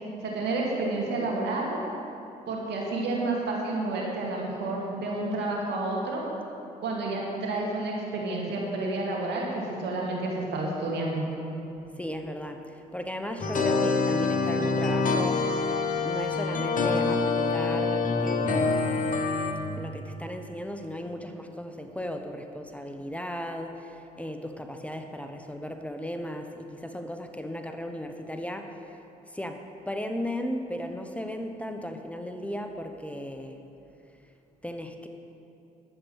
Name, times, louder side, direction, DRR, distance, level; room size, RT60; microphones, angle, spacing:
voice 1, 0.2-1.8 2.5-6.2 6.8-11.3, right 2 dB, 75° right, -2 dB, 2.2 m, -30 dB
voice 2, 11.9-19.0 19.8-33.6 34.2-34.3 34.6-35.1, equal, 5° left, 5 dB, 1.0 m, -36 dB
sound 1, 13.4-19.5, left 4 dB, 50° left, 1.2 m, -26 dB
11.0 x 7.9 x 6.4 m, 2.7 s
supercardioid pair, 55°, 18 cm